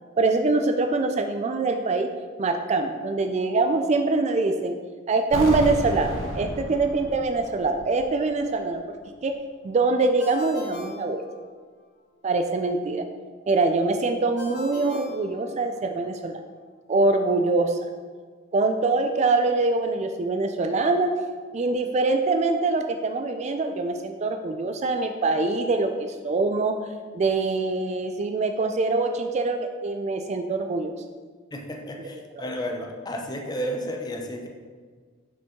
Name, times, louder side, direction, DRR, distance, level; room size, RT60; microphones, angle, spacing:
voice 1, 0.2-2.1 2.4-4.8 5.1-9.0 9.2-9.3 9.6-11.2 12.2-13.1 13.5-16.4 16.9-17.8 18.5-21.1 21.5-26.7 27.1-30.9 32.0-32.2, right 3 dB, 35° right, 6 dB, 0.3 m, -24 dB
sound 1, 5.3-8.2 8.5-8.6, right 1 dB, 75° right, 0.9 m, -32 dB
Ringtone, 10.2-11.9 14.4-16.0, left 3 dB, 55° left, 0.9 m, -42 dB
voice 2, 31.5-34.5, equal, 20° left, 2 dB, 0.6 m, -32 dB
5.7 x 5.2 x 3.6 m, 1.5 s
head